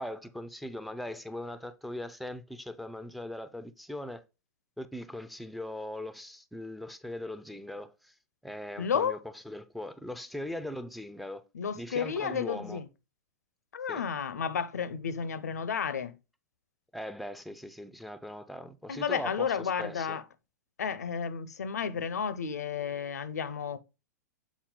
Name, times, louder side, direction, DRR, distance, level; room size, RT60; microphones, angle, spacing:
voice 1, 0.0-4.2 4.8-8.1 8.4-9.2 9.5-11.4 11.8-12.8 13.9-14.0 16.9-20.2, left 1 dB, ahead, 0.4 m, -40 dB
voice 2, 8.8-9.2 11.5-12.9 13.7-16.1 18.9-20.2 20.8-23.8, left 7 dB, 70° left, 0.6 m, -32 dB
7.2 x 4.2 x 3.7 m
figure-of-eight pair, 100°, 9 cm